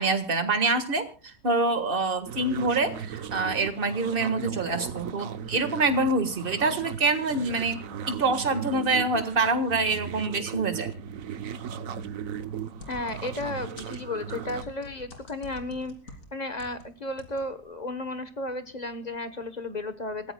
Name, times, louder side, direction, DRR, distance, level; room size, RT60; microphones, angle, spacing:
voice 1, 0.0-7.8 8.1-10.9, right 3 dB, 35° right, 9 dB, 1.7 m, -26 dB
sound 1, 2.3-14.6, right 8 dB, 60° right, 1.2 m, -37 dB
sound 2, 12.8-16.9 17.2-17.5 17.7-17.8, left 2 dB, 50° left, 3.0 m, -46 dB
voice 2, 12.9-20.3, left 2 dB, 30° left, 11 dB, 1.0 m, -34 dB
27.5 x 15.0 x 2.3 m, 0.34 s
omnidirectional pair, 1.8 m